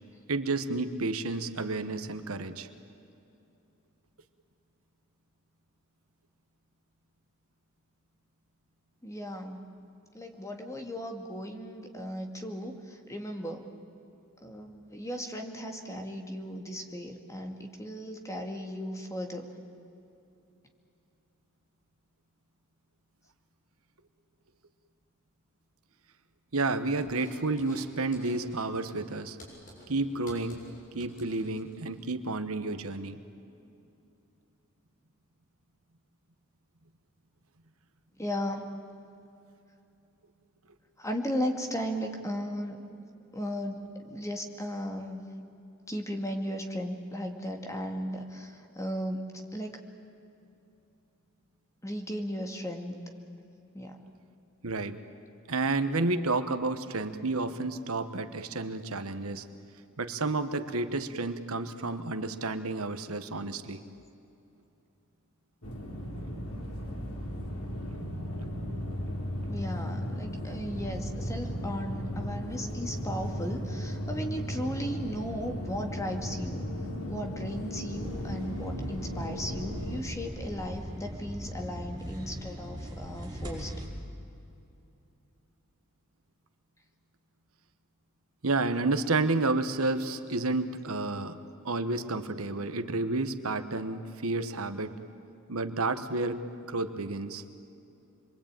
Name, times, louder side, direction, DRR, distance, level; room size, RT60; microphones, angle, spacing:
voice 1, 0.3-2.7 26.5-29.4 29.9-30.6 30.9-33.2 54.6-55.0 55.5-59.4 60.0-63.8 68.3-68.5 88.4-91.4 91.6-94.9 95.5-96.4 96.7-97.4, right 3 dB, 80° right, 10 dB, 1.3 m, -30 dB
voice 2, 9.0-9.6 10.1-13.7 14.4-19.5 38.2-38.7 41.0-42.9 43.3-45.3 45.9-49.2 49.5-49.8 51.8-52.9 53.7-54.0 69.5-76.7 77.1-83.7, equal, 15° left, 4 dB, 2.2 m, -36 dB
sound 1, 27.0-27.9 28.1-28.4 28.7-32.0, equal, 40° left, 7.1 m, -52 dB
sound 2, 65.6-80.0, equal, 85° left, 3.7 m, -36 dB
sound 3, 78.0-83.9, equal, 20° right, 5.5 m, -39 dB
27.0 x 23.0 x 9.0 m, 2.8 s
head